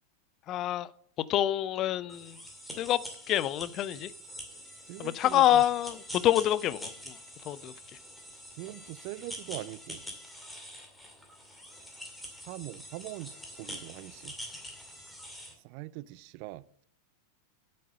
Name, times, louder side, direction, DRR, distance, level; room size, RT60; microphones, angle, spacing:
voice 1, 0.5-0.9 1.3-2.4 2.8-3.0 3.3-4.1 5.0-7.2 7.5-7.7, left 12 dB, 35° left, 0.5 m, -27 dB
sound 1, 2.1-15.5, equal, 5° left, 2.2 m, -45 dB
voice 2, 4.9-5.6 8.6-10.0 12.5-14.3 15.6-16.8, right 18 dB, 45° right, 0.4 m, -42 dB
8.6 x 6.4 x 6.8 m
figure-of-eight pair, 90°, 0 cm